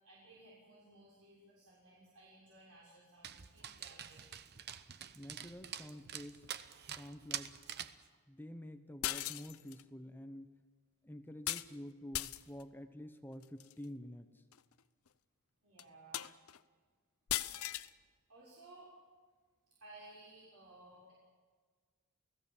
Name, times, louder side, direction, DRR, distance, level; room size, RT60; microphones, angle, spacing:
voice 1, 0.0-4.3 15.6-16.2 18.3-18.9 19.7-21.1, right 2 dB, 70° right, -6 dB, 6.5 m, -58 dB
Dog, 3.2-8.0, right 9 dB, 50° right, 0.9 m, -46 dB
voice 2, 5.1-6.5 6.9-7.5 8.3-10.5 11.0-14.4, equal, 10° left, 8 dB, 1.0 m, -49 dB
sound 1, 9.0-9.8 11.5-11.7 12.1-12.6 13.4-13.7 14.5-14.6 15.1-15.2 15.8-15.9 16.1-16.6 17.3-17.9, left 13 dB, 70° left, 0.7 m, -38 dB
29.0 x 17.0 x 7.4 m, 1.5 s
head